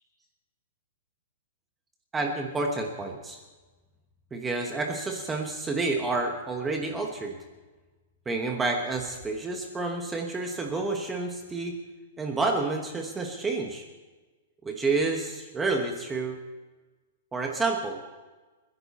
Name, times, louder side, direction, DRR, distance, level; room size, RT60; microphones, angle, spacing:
voice 1, 2.1-3.4 4.3-7.4 8.3-11.8 12.2-13.9 14.6-16.4 17.3-18.0, right 3 dB, 10° right, 2 dB, 1.1 m, -29 dB
29.5 x 10.5 x 4.2 m, 1.3 s
hypercardioid pair, 175°, 0 cm